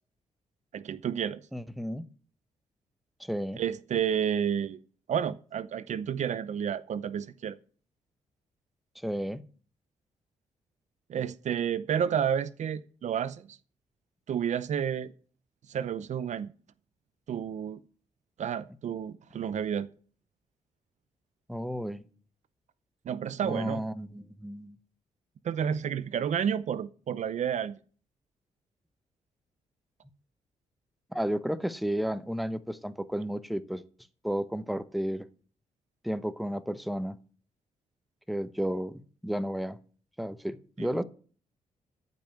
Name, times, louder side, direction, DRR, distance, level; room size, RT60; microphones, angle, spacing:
voice 1, 0.7-1.4 3.6-4.8 5.1-7.6 11.1-13.6 14.3-15.1 15.7-16.5 17.3-17.8 18.4-19.9 23.1-23.8 25.4-27.8 40.8-40.9, right 8 dB, 65° right, 0.7 m, -30 dB
voice 2, 1.5-2.1 3.2-3.6 9.0-9.5 21.5-22.0 23.4-24.8 31.1-33.8 34.2-35.3 36.0-37.2 38.3-39.8 40.2-41.0, equal, ahead, 0.9 m, -32 dB
14.0 x 5.4 x 7.8 m
cardioid pair, 75°, 13 cm